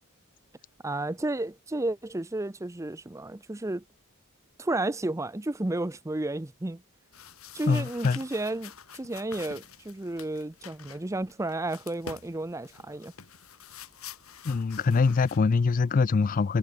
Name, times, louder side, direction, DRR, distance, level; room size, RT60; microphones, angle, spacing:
voice 1, 0.8-3.8 4.6-6.8 7.5-13.1, right 2 dB, 15° right, 0.5 m, -32 dB
sound 1, 7.1-15.4, left 7 dB, 80° left, 4.6 m, -47 dB
voice 2, 7.7-8.2 14.4-16.6, left 4 dB, 40° left, 0.3 m, -24 dB
head